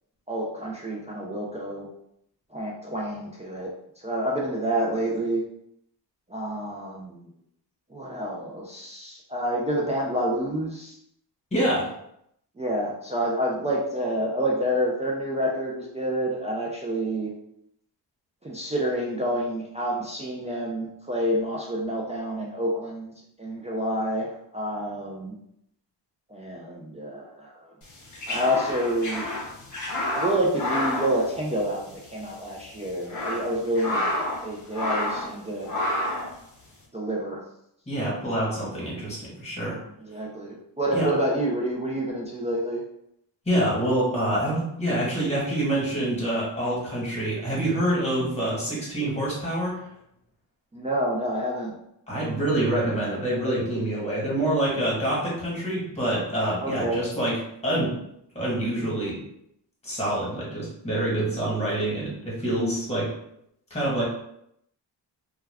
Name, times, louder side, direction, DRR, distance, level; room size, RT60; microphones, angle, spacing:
voice 1, 0.3-1.9 2.5-3.7 4.0-5.4 6.3-7.3 7.9-11.0 12.6-17.3 18.4-23.1 23.4-25.4 26.3-27.7 28.3-29.3 30.1-35.7 36.9-37.4 40.0-42.8 50.7-51.7 56.6-57.0, right 1 dB, 20° right, -4 dB, 0.3 m, -28 dB
voice 2, 11.5-11.9 37.9-39.8 40.9-41.1 43.4-49.9 52.1-57.4 57.6-58.0 58.3-59.2 59.8-63.1 63.7-64.1, right 1 dB, 15° left, -6 dB, 1.3 m, -26 dB
sound 1, 27.9-32.4 32.9-34.4 34.7-35.3 35.7-36.3, left 1 dB, 45° left, 0.7 m, -29 dB
2.3 x 2.2 x 3.3 m, 0.76 s
wide cardioid pair, 125°, 41 cm